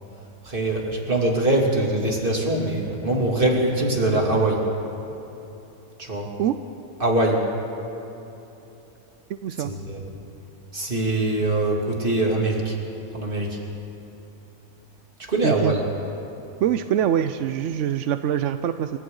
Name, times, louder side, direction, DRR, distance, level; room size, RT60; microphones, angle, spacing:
voice 1, 0.4-4.7 6.0-6.3 7.0-7.5 9.6-10.0 10.7-12.8 13.1-13.6 15.3-15.8, right 2 dB, 30° right, -1 dB, 3.0 m, -23 dB
voice 2, 9.3-9.7 15.4-15.7 16.6-19.0, right 10 dB, 65° right, 10 dB, 0.7 m, -24 dB
27.5 x 25.0 x 3.9 m, 3.0 s
omnidirectional pair, 1.7 m